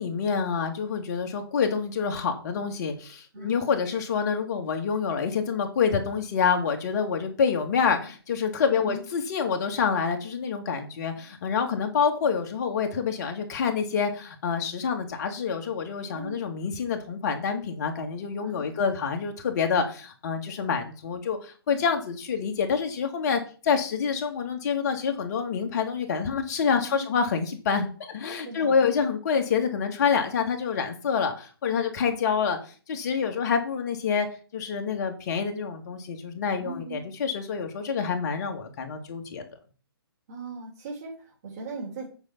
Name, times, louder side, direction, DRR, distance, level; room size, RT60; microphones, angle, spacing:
voice 1, 0.0-34.3 34.5-39.4, left 6 dB, 45° left, 4 dB, 2.2 m, -27 dB
voice 2, 3.3-3.7 8.7-9.0 16.1-16.4 18.4-18.8 26.8-27.1 28.3-28.8 36.6-37.0 40.3-42.1, right 2 dB, 40° right, -2 dB, 3.3 m, -39 dB
8.7 x 5.3 x 5.9 m, 0.39 s
figure-of-eight pair, 140°, 13 cm